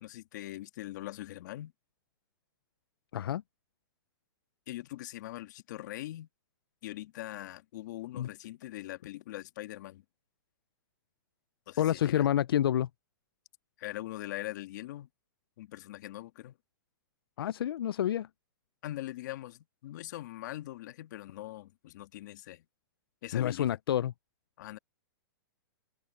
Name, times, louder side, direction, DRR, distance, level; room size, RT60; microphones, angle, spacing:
voice 1, 0.0-1.7 4.7-6.3 6.8-10.0 11.7-12.3 13.8-15.1 15.6-16.5 18.8-22.6 23.2-23.8 24.6-24.8, left 15 dB, 50° left, 1.6 m, -42 dB
voice 2, 11.8-12.9 17.4-18.3 23.3-24.1, left 11 dB, 85° left, 0.4 m, -28 dB
hypercardioid pair, 155°, 12 cm